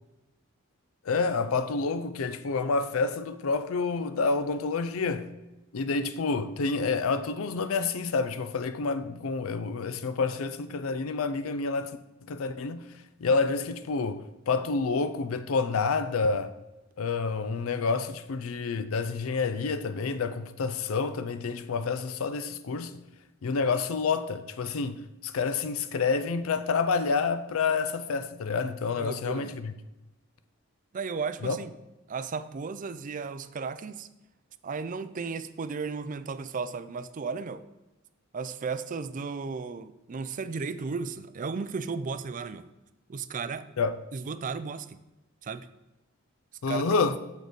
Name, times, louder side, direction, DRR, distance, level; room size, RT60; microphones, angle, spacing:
voice 1, 1.1-5.3 5.7-12.0 12.3-12.9 13.2-16.5 17.0-23.0 23.4-29.7 31.4-31.6 43.8-44.0 46.6-47.2, left 4 dB, 85° left, 0.5 m, -28 dB
voice 2, 29.0-29.5 30.9-31.7 32.1-34.1 34.6-37.7 38.3-42.7 43.1-43.7 44.1-45.0 45.4-45.7 46.7-46.9, right 4 dB, 40° right, 0.4 m, -34 dB
6.4 x 6.4 x 5.1 m
head